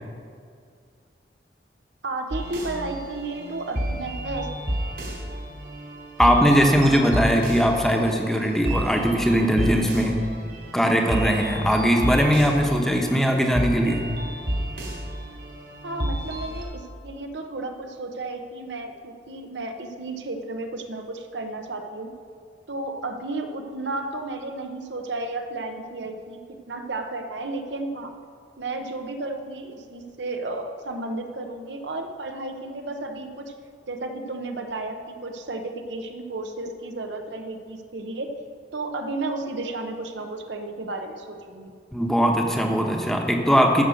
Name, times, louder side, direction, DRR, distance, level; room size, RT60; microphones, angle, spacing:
voice 1, 2.0-4.5 15.8-22.1 22.7-26.4 26.7-28.1 28.6-33.5 33.9-38.3 38.7-41.7, right 2 dB, 85° right, 5 dB, 1.0 m, -33 dB
sound 1, 2.3-16.6, right 1 dB, 60° right, 3.1 m, -31 dB
voice 2, 6.2-10.1 10.7-14.0 41.9-43.8, equal, ahead, 1 dB, 1.0 m, -20 dB
14.0 x 6.4 x 6.5 m, 2.2 s
head